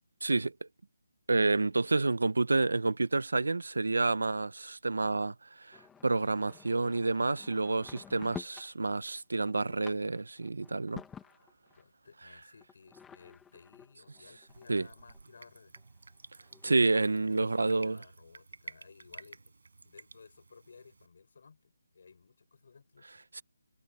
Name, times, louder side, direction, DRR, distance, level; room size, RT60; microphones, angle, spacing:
voice 1, 0.2-0.7 1.3-11.0 14.7-14.9 16.6-18.0 23.3-23.4, right 3 dB, 85° right, 1.2 m, -29 dB
sound 1, 5.7-8.7 9.2-11.8 12.6-15.2 15.8-15.9 16.1-16.2 16.4-17.3, left 7 dB, 5° left, 1.7 m, -50 dB
voice 2, 11.7-15.7 17.3-19.5 19.8-23.2, left 5 dB, 35° left, 7.0 m, -57 dB
Drip, 14.5-21.1, right 3 dB, 60° right, 5.4 m, -52 dB
hypercardioid pair, 180°, 0 cm